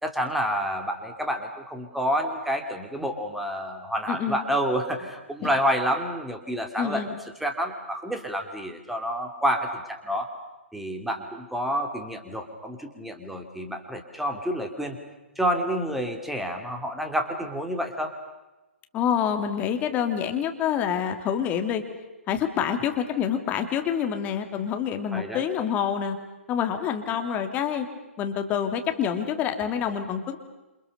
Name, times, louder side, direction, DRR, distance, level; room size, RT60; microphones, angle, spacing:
voice 1, 0.0-7.1 7.4-10.3 10.7-15.0 15.4-18.1 25.1-25.4, equal, ahead, 4 dB, 3.1 m, -29 dB
voice 2, 4.1-4.4 5.4-5.5 6.8-7.1 18.9-21.8 22.3-26.2 26.5-27.9 28.2-30.4, left 8 dB, 20° left, 6 dB, 2.7 m, -27 dB
28.5 x 28.0 x 6.8 m, 1.1 s
figure-of-eight pair, 125°, 7 cm